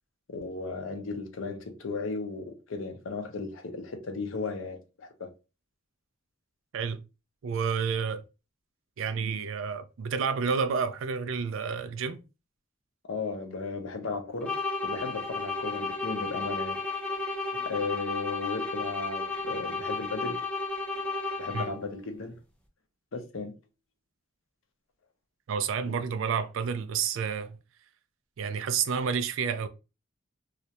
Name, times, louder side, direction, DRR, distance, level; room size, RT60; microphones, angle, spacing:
voice 1, 0.3-5.3 13.0-14.6 14.8-16.8 17.6-20.4 21.4-22.4 23.1-23.5, left 4 dB, 70° left, 0.6 m, -35 dB
voice 2, 7.4-8.2 9.0-12.2 17.5-17.9 21.5-21.7 25.5-27.6 28.4-29.7, right 6 dB, 70° right, 0.4 m, -30 dB
sound 1, 14.4-21.9, left 3 dB, 5° left, 0.5 m, -33 dB
2.4 x 2.1 x 2.8 m
head